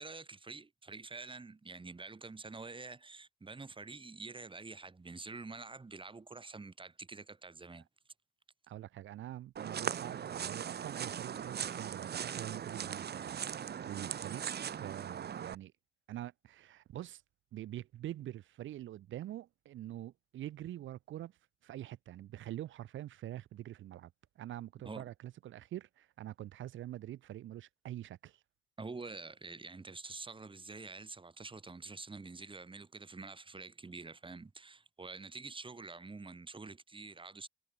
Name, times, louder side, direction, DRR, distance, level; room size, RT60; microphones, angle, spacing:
voice 1, 0.0-7.9 24.8-25.0 28.8-37.5, right 3 dB, 25° right, 7.0 m, -47 dB
voice 2, 8.7-15.7 16.1-17.2 17.5-28.4, right 13 dB, 75° right, 1.4 m, -45 dB
sound 1, 9.6-15.6, right 8 dB, 55° right, 3.2 m, -39 dB
cardioid pair, 90°, 20 cm